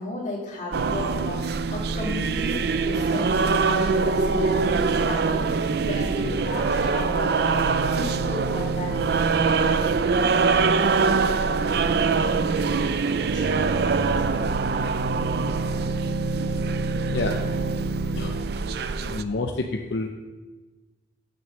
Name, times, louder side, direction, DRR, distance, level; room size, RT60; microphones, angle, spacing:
voice 1, 0.0-7.7 7.9-9.4 10.6-14.9, left 1 dB, 40° left, -3 dB, 2.4 m, -35 dB
sound 1, 0.7-19.2, right 4 dB, 60° right, 0.4 m, -23 dB
voice 2, 17.1-17.4 18.2-18.4 19.0-20.1, left 3 dB, 70° left, 3 dB, 0.6 m, -28 dB
7.8 x 6.3 x 7.3 m, 1.3 s
head